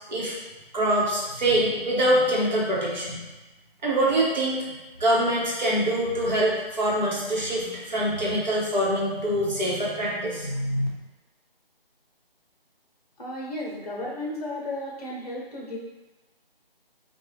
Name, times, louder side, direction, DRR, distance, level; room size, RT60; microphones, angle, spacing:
voice 1, 0.7-3.2 3.8-4.6 5.0-10.9, right 1 dB, 45° right, -5 dB, 1.0 m, -24 dB
voice 2, 13.2-15.8, left 1 dB, 40° left, -3 dB, 0.9 m, -34 dB
3.7 x 2.3 x 3.2 m, 1.1 s
figure-of-eight pair, 165°, 30 cm